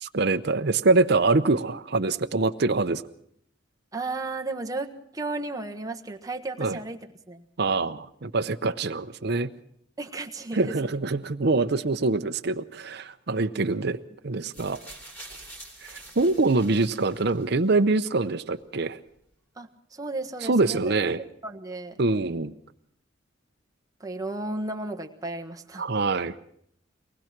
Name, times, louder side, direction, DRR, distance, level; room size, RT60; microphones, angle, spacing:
voice 1, 0.0-3.0 6.6-6.8 7.6-9.5 10.5-14.0 14.2-14.8 15.8-19.0 20.4-21.2 22.0-22.5 25.8-26.3, right 3 dB, 60° right, 8 dB, 0.8 m, -24 dB
voice 2, 3.9-7.0 7.3-7.4 10.0-10.9 14.4-14.5 19.6-21.0 21.4-22.0 24.0-25.8, right 2 dB, 20° right, 3 dB, 1.4 m, -34 dB
sound 1, 14.5-17.7 18.6-18.7, right 1 dB, 10° left, 3.5 m, -46 dB
23.5 x 19.5 x 6.0 m, 0.71 s
head